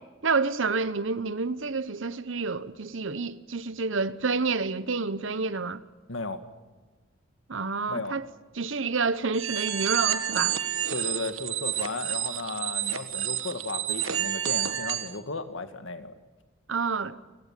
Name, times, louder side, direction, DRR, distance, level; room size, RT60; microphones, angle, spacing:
voice 1, 0.2-5.8 7.5-8.2 8.5-10.6 16.7-17.2, right 4 dB, 70° right, 1.0 m, -28 dB
voice 2, 6.1-6.4 7.9-8.2 10.9-16.1, left 3 dB, 75° left, 1.9 m, -35 dB
sound 1, 9.3-15.1, right 11 dB, 90° right, 1.4 m, -30 dB
29.5 x 18.0 x 7.5 m
head